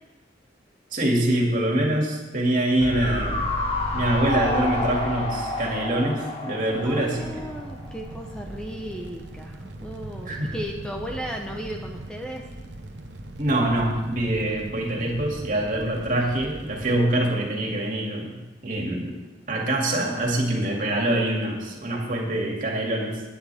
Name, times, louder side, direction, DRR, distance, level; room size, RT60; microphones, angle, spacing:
voice 1, 0.9-3.5 3.9-7.4 10.3-10.5 13.4-19.1 19.5-23.2, right 1 dB, 45° right, -1 dB, 2.6 m, -25 dB
sound 1, 2.8-8.0 8.3-8.4, left 2 dB, 30° left, 1.7 m, -29 dB
Fire, 6.7-17.0, right 1 dB, 75° right, 1.1 m, -39 dB
voice 2, 6.8-12.5, equal, 5° left, 1 dB, 0.9 m, -35 dB
20.0 x 10.0 x 3.6 m, 1.1 s
head